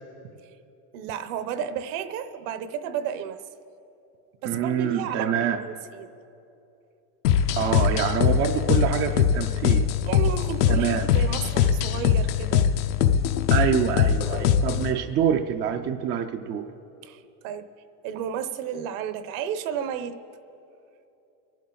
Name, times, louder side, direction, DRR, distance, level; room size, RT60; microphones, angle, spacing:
voice 1, 0.9-3.4 4.4-6.1 10.0-12.7 17.0-17.7 18.0-20.2, right 8 dB, 60° right, 11 dB, 0.9 m, -32 dB
voice 2, 4.4-5.6 7.6-9.9 10.7-11.0 13.5-16.7, right 8 dB, 25° right, 6 dB, 0.4 m, -26 dB
sound 1, 7.2-14.9, left 8 dB, 80° left, 1.0 m, -22 dB
29.0 x 11.5 x 3.9 m, 2.8 s
supercardioid pair, 140°, 46 cm